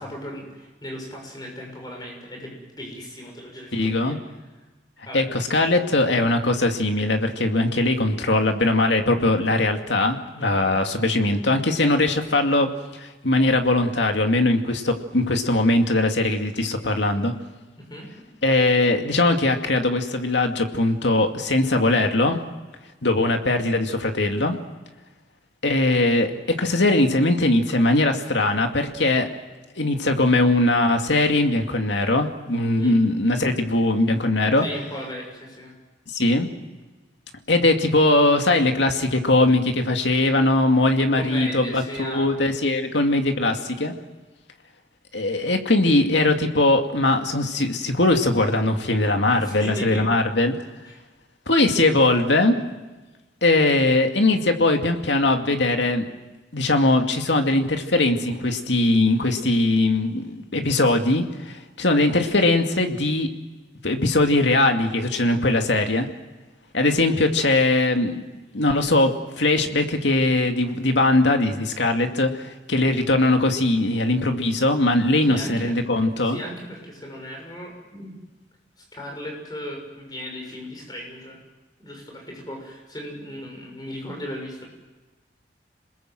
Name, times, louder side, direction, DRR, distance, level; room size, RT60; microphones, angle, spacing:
voice 1, 0.0-4.2 5.1-5.3 10.4-10.7 17.8-18.1 32.8-33.0 34.6-35.8 41.2-42.6 49.2-50.1 50.8-51.0 75.2-75.8 76.2-78.2 78.8-81.4 81.8-84.7, equal, 20° left, 1 dB, 6.6 m, -36 dB
voice 2, 3.7-4.2 5.1-12.7 13.0-17.3 18.4-22.4 23.0-24.6 25.6-29.3 29.8-34.7 36.1-36.5 37.5-43.9 45.1-50.5 51.5-52.6 53.4-56.1 56.5-63.3 63.8-66.1 66.7-68.2 68.5-76.4, left 2 dB, 80° left, 5 dB, 2.3 m, -20 dB
28.0 x 20.5 x 7.8 m, 1.2 s
head